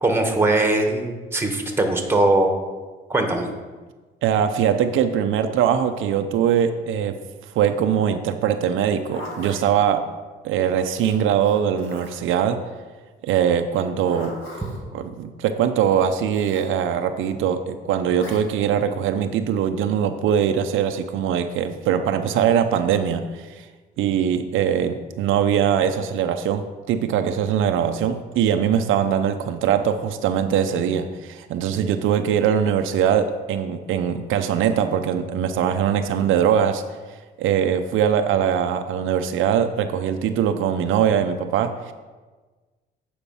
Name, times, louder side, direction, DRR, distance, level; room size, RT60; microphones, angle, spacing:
voice 1, 0.0-2.5 3.1-3.4, right 2 dB, 10° right, 4 dB, 1.3 m, -20 dB
voice 2, 4.2-7.2 7.5-10.1 10.4-12.7 13.2-14.4 14.9-23.7 24.0-36.8 37.4-41.9, right 8 dB, 85° right, 7 dB, 0.5 m, -22 dB
Zipper (clothing), 8.8-9.6 10.9-12.3 13.7-14.8 16.3-16.7 18.2-18.4, left 2 dB, 90° left, 1.8 m, -38 dB
8.4 x 5.1 x 5.4 m, 1.3 s
cardioid pair, 90°, 20 cm